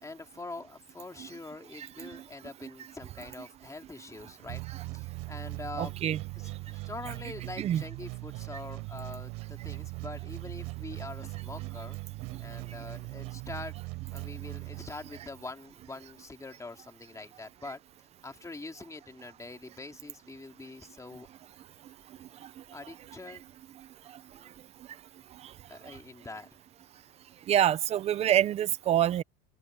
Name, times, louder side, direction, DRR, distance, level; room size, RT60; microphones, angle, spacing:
voice 1, 0.0-4.6 4.9-5.9 6.3-12.0 12.4-13.8 14.1-17.8 18.2-21.3 22.7-23.4 24.3-24.6 25.7-26.6, left 3 dB, 10° left, 2.9 m, -44 dB
voice 2, 1.8-2.1 5.8-6.2 7.6-7.8 27.5-29.2, right 11 dB, 15° right, 0.4 m, -26 dB
sound 1, 4.5-15.4, right 23 dB, 50° right, 4.2 m, -40 dB
open air
supercardioid pair, 150°, 40 cm